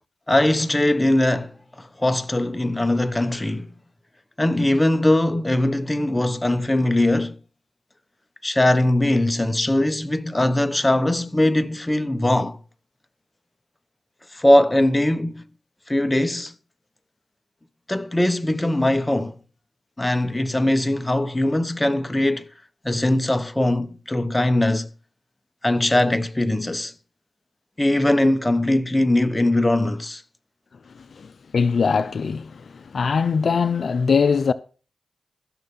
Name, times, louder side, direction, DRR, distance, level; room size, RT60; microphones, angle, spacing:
voice 1, 0.3-3.7 4.4-7.4 8.4-12.6 14.3-15.4 15.9-16.5 17.9-19.4 20.0-22.5 22.8-24.9 25.6-26.9 27.8-30.2, left 1 dB, 15° left, 1.0 m, -21 dB
voice 2, 31.0-34.5, left 5 dB, 65° left, 0.5 m, -22 dB
15.0 x 6.6 x 5.6 m
cardioid pair, 55°, 0 cm